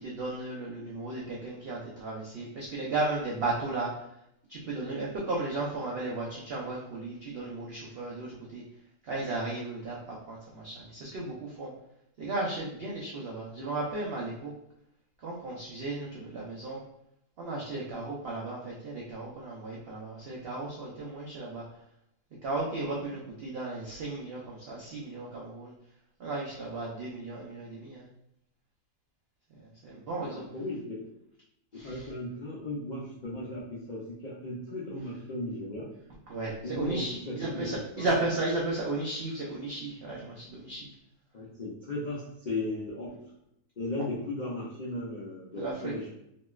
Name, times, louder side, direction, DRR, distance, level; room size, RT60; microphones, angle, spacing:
voice 1, 0.0-3.9 4.5-8.6 9.1-11.7 12.2-14.5 15.2-16.8 17.4-21.6 22.4-25.7 26.2-28.1 29.8-30.4 31.7-32.0 36.3-40.9 45.5-45.9, right 2 dB, 80° right, -4 dB, 0.5 m, -35 dB
voice 2, 30.1-31.1 31.7-35.9 36.6-38.1 41.3-43.2 43.8-46.1, left 2 dB, 80° left, -6 dB, 0.4 m, -36 dB
3.1 x 2.9 x 2.3 m, 0.78 s
omnidirectional pair, 1.7 m